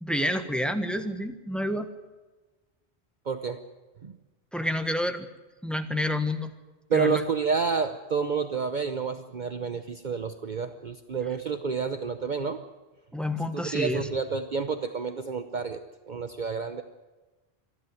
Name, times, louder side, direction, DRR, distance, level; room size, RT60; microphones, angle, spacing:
voice 1, 0.0-1.9 4.5-5.3 5.6-6.5 6.9-7.2 13.1-14.1, left 1 dB, ahead, 8 dB, 1.3 m, -29 dB
voice 2, 3.3-3.6 4.0-4.1 6.9-12.6 13.5-15.8 16.1-16.8, right 5 dB, 50° right, 9 dB, 1.0 m, -29 dB
26.5 x 11.5 x 9.1 m, 1.2 s
omnidirectional pair, 1.1 m